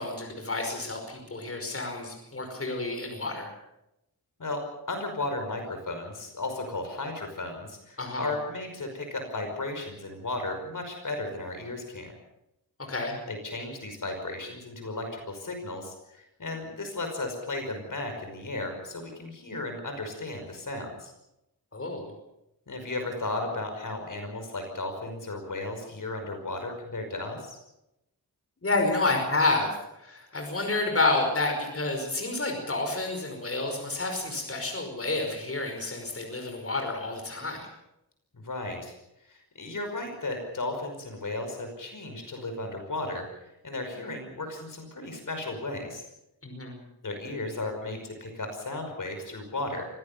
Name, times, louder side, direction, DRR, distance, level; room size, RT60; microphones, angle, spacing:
voice 1, 0.0-3.5 8.0-8.3 12.9-13.2 21.7-22.1 28.6-29.8 30.0-37.6 46.4-46.8, left 2 dB, 35° left, 3 dB, 5.3 m, -29 dB
voice 2, 4.4-12.1 13.3-21.1 22.7-27.6 38.3-38.9 39.3-46.0 47.0-49.9, left 2 dB, 55° left, 5 dB, 5.4 m, -35 dB
24.5 x 17.5 x 7.0 m, 0.87 s
wide cardioid pair, 110°, 38 cm